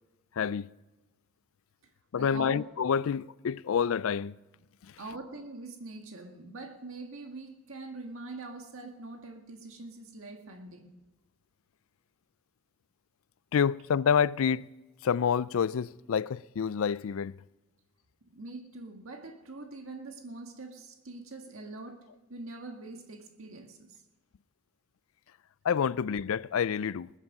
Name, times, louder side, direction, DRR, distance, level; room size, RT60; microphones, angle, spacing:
voice 1, 0.3-0.7 2.1-4.3 4.8-5.0 13.5-14.7 15.0-17.4 25.6-27.1, left 7 dB, 70° left, 0.4 m, -28 dB
voice 2, 2.2-2.6 5.0-10.9 18.3-22.0 22.3-24.0, right 3 dB, 70° right, 1.8 m, -43 dB
20.5 x 10.0 x 5.3 m
head